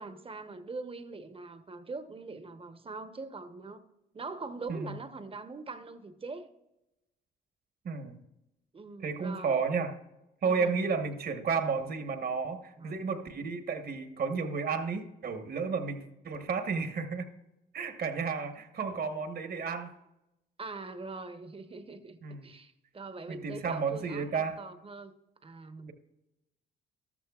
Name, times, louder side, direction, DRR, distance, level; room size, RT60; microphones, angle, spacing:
voice 1, 0.0-3.8 4.1-6.5 8.7-9.7 10.4-10.9 12.8-13.1 20.6-25.1 25.4-25.9, right 3 dB, 30° right, 10 dB, 1.0 m, -43 dB
voice 2, 7.8-8.2 9.0-9.9 10.4-17.3 17.7-19.9 22.2-22.5 23.3-24.6, right 5 dB, 50° right, 7 dB, 1.2 m, -32 dB
13.5 x 12.5 x 2.4 m, 0.94 s
cardioid pair, 90°, 20 cm